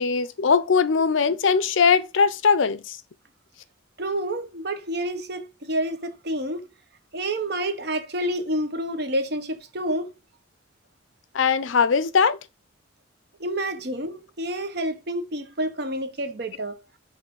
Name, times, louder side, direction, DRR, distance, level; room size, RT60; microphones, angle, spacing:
voice 1, 0.0-3.0 11.3-12.4, left 5 dB, 75° left, 0.5 m, -20 dB
voice 2, 4.0-6.7 7.1-10.1 13.4-16.8, right 1 dB, 55° right, 0.9 m, -29 dB
5.7 x 3.2 x 5.3 m
head